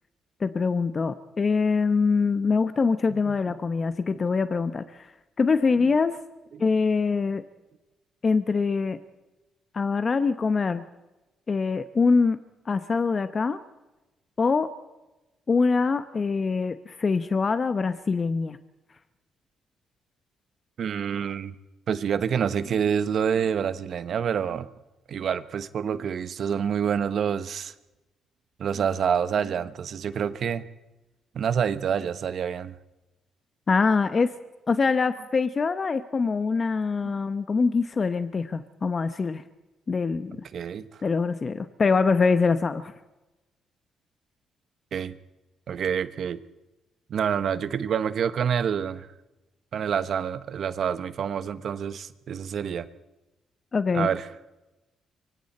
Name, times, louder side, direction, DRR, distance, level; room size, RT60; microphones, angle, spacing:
voice 1, 0.4-5.1 5.4-6.2 6.6-7.4 8.2-9.0 9.7-10.8 11.5-13.6 14.4-14.7 15.5-18.6 33.7-34.3 34.7-39.4 39.9-40.4 41.0-42.9 53.7-54.1, left 4 dB, 35° left, 11 dB, 0.9 m, -24 dB
voice 2, 20.8-21.5 21.9-24.7 25.1-27.7 28.6-30.6 31.3-32.7 37.0-37.1 40.5-40.9 44.9-45.2 45.7-46.4 47.1-49.1 49.7-52.9 53.9-54.3, right 7 dB, 60° right, 13 dB, 1.1 m, -27 dB
25.0 x 24.5 x 4.4 m, 1.0 s
cardioid pair, 90°, 0 cm